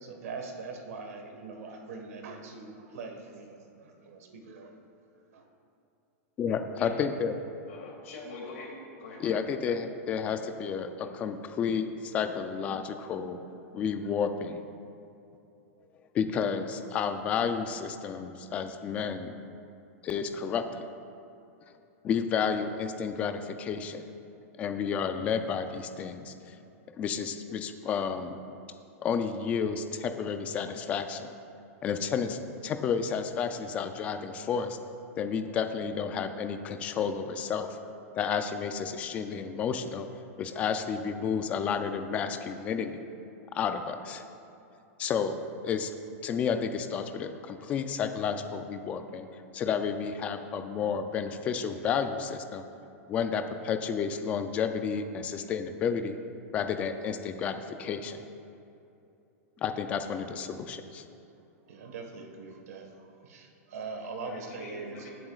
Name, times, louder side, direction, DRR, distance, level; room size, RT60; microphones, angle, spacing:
voice 1, 0.0-4.7 5.3-5.4 61.7-62.9 63.2-65.1, right 4 dB, 80° right, 3 dB, 1.5 m, -42 dB
voice 2, 6.4-7.3 9.2-13.4 13.7-14.7 16.1-19.3 20.0-20.9 22.0-24.1 24.6-26.6 27.0-28.4 29.0-31.3 31.8-34.8 35.2-37.8 38.1-40.1 40.4-43.1 43.5-44.2 45.0-45.4 45.6-45.9 46.2-49.3 49.5-52.6 53.1-56.2 56.5-58.3 59.6-61.0, left 6 dB, 15° left, 8 dB, 0.4 m, -31 dB
voice 3, 7.7-8.7 9.0-9.3 64.2-65.1, left 3 dB, 70° left, -1 dB, 2.4 m, -44 dB
18.5 x 7.7 x 2.4 m, 2.8 s
supercardioid pair, 175°, 8 cm